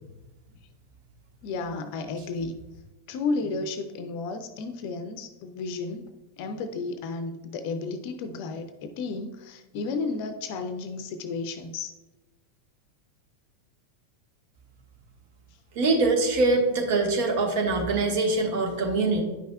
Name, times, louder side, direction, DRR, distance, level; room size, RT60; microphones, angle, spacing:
voice 1, 1.4-2.6 3.1-6.1 6.4-11.9, left 3 dB, 45° left, 9 dB, 0.5 m, -33 dB
voice 2, 15.7-19.2, right 3 dB, 50° right, 2 dB, 1.4 m, -23 dB
9.9 x 5.4 x 2.3 m, 1.1 s
figure-of-eight pair, 90°, 0 cm